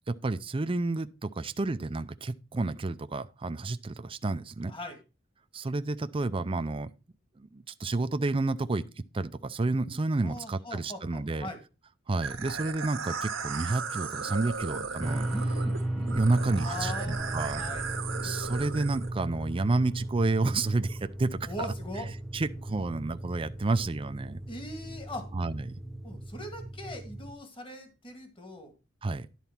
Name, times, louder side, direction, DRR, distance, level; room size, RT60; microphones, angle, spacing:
voice 1, 0.1-4.7 5.5-6.9 7.4-8.8 9.1-11.5 12.1-15.3 16.0-17.6 18.2-21.5 22.3-24.4 25.3-25.6 29.0-29.3, right 3 dB, 25° right, 0.5 m, -30 dB
voice 2, 4.7-5.0 10.2-11.6 15.2-15.8 16.4-17.9 21.5-22.1 24.5-25.3 26.0-28.7, left 1 dB, 25° left, 1.8 m, -41 dB
sound 1, 12.2-19.1, right 5 dB, 80° right, 1.3 m, -36 dB
sound 2, 15.0-27.3, right 1 dB, ahead, 1.0 m, -36 dB
11.0 x 4.1 x 5.8 m
head